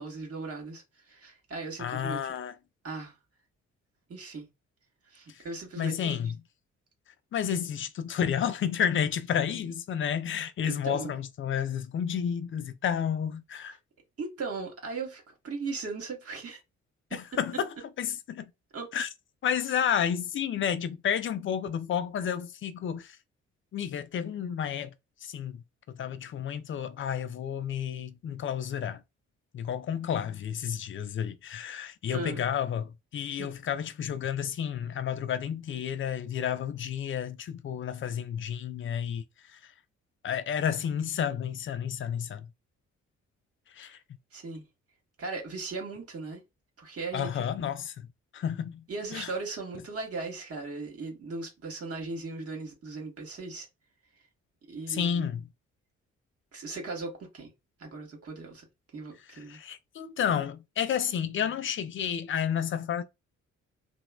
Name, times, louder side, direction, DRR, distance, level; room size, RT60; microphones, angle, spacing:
voice 1, 0.0-2.3 2.8-3.1 4.1-4.5 5.1-6.2 10.6-11.1 14.2-16.6 17.1-17.2 18.7-18.9 32.1-32.4 33.4-33.5 43.8-43.9 44.3-44.7 45.2-46.4 46.8-47.5 48.9-53.7 54.7-55.3 56.5-57.5 57.8-58.6 58.9-59.6, right 3 dB, 40° right, 1.2 m, -38 dB
voice 2, 1.8-2.5 5.8-6.3 7.3-13.8 17.1-17.7 18.0-18.5 18.9-19.1 19.4-23.2 23.7-24.9 25.2-25.6 25.9-29.0 29.5-39.2 39.5-39.6 40.2-42.5 43.7-44.0 47.1-48.1 48.3-48.8 49.1-49.3 54.9-55.4 59.5-63.0, left 8 dB, 35° left, 0.4 m, -31 dB
2.9 x 2.0 x 2.3 m
hypercardioid pair, 40°, 36 cm